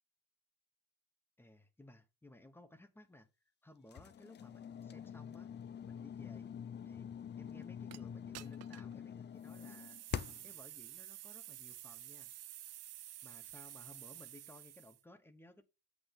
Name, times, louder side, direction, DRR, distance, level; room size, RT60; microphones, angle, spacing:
voice 1, 1.4-3.3 3.6-5.5 5.9-6.5 6.8-7.1 7.4-10.0 10.4-12.3 13.2-15.6, left 2 dB, 5° left, 1.1 m, -59 dB
sound 1, 3.9-10.6, left 8 dB, 25° left, 0.5 m, -46 dB
sound 2, 7.9-8.0 8.3-8.9 9.4-15.0, right 14 dB, 40° right, 0.5 m, -51 dB
8.7 x 8.0 x 3.7 m
cardioid pair, 160°, 40 cm